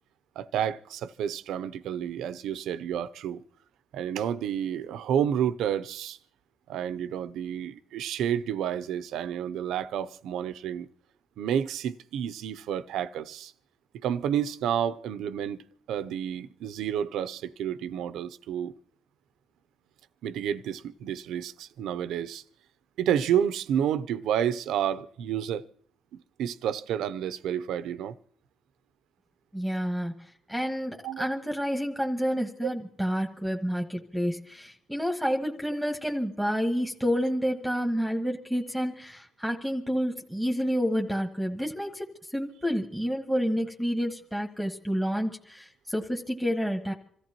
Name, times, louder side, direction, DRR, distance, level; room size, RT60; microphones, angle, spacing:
voice 1, 0.4-3.4 3.9-6.2 6.7-10.9 11.4-13.5 13.9-15.6 15.9-18.7 20.2-22.4 23.0-25.6 26.4-28.2 31.0-31.3 32.6-32.7, right 9 dB, 80° right, 0.6 m, -30 dB
voice 2, 29.5-42.1 42.3-46.9, equal, ahead, 1.4 m, -29 dB
27.0 x 14.0 x 3.0 m
cardioid pair, 95°, 0 cm